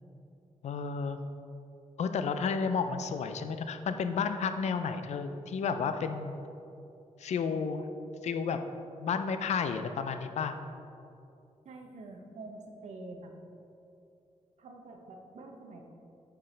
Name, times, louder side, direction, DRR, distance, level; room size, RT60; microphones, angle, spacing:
voice 1, 0.6-1.2 2.0-6.3 7.2-7.9 8.2-8.6 9.0-10.5, left 5 dB, 70° left, 8 dB, 0.4 m, -32 dB
voice 2, 11.6-13.3 14.6-15.9, right 2 dB, 75° right, 2 dB, 0.8 m, -46 dB
8.8 x 4.5 x 3.2 m, 2.7 s
wide cardioid pair, 125°, 12 cm